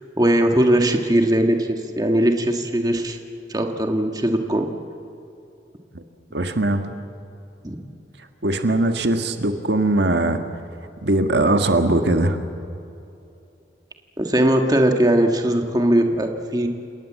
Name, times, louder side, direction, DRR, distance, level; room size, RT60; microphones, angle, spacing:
voice 1, 0.2-3.2 3.5-4.7 7.6-7.8 14.2-16.7, right 1 dB, 20° right, 3 dB, 1.8 m, -19 dB
voice 2, 6.3-6.9 8.4-10.4 11.0-12.4, right 2 dB, 70° right, 6 dB, 1.6 m, -20 dB
30.0 x 18.5 x 7.7 m, 2.7 s
head